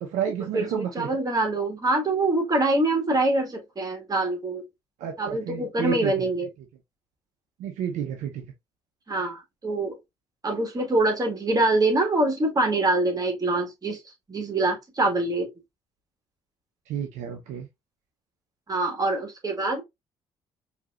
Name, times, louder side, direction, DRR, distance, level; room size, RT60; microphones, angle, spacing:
voice 1, 0.0-1.1 5.0-6.3 7.6-8.5 16.9-17.7, right 8 dB, 60° right, 0.8 m, -31 dB
voice 2, 0.5-4.6 5.2-6.5 9.1-10.0 10.4-14.0 14.3-15.5 18.7-19.8, right 2 dB, 25° right, 1.8 m, -24 dB
4.7 x 2.9 x 2.5 m
figure-of-eight pair, 45°, 14 cm